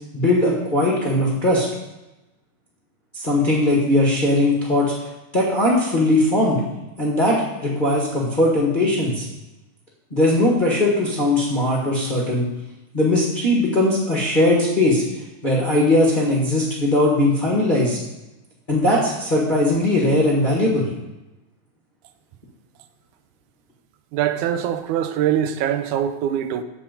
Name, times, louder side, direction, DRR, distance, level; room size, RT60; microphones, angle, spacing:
voice 1, 0.1-1.7 3.1-4.9 5.3-6.6 7.0-9.3 10.1-12.5 12.9-15.0 15.4-18.0 18.7-20.9, left 1 dB, 30° left, 0.9 m, -19 dB
voice 2, 24.1-26.6, right 10 dB, 85° right, 2.1 m, -23 dB
8.7 x 7.4 x 5.3 m
omnidirectional pair, 3.4 m